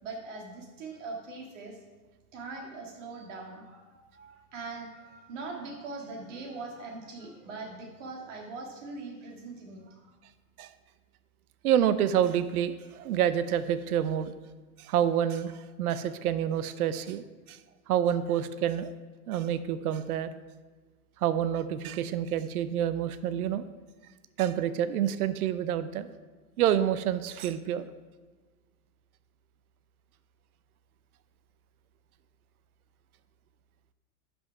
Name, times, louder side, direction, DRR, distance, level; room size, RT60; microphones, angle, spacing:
voice 1, 0.0-1.8 2.3-10.1, right 3 dB, 50° right, 1 dB, 2.1 m, -41 dB
voice 2, 11.6-14.3 14.8-15.5 15.8-17.6 17.9-18.9 19.3-20.3 21.2-23.6 24.4-26.1 26.6-27.9, right 10 dB, 65° right, 13 dB, 0.7 m, -28 dB
10.5 x 6.2 x 4.7 m, 1.3 s
supercardioid pair, 165°, 47 cm